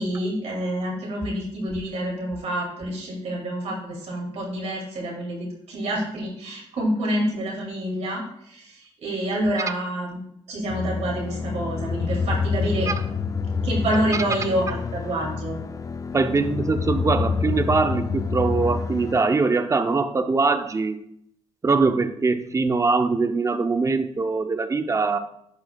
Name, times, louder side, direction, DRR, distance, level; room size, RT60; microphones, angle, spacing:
voice 1, 0.0-10.2 10.5-12.9 13.6-15.6, right 1 dB, 75° right, -1 dB, 2.3 m, -27 dB
sound 1, 10.7-19.2, left 5 dB, 30° left, 0.4 m, -27 dB
voice 2, 16.1-21.0 21.6-25.2, right 4 dB, 30° right, 9 dB, 0.6 m, -22 dB
10.0 x 5.1 x 2.3 m, 0.73 s
cardioid pair, 80°, 11 cm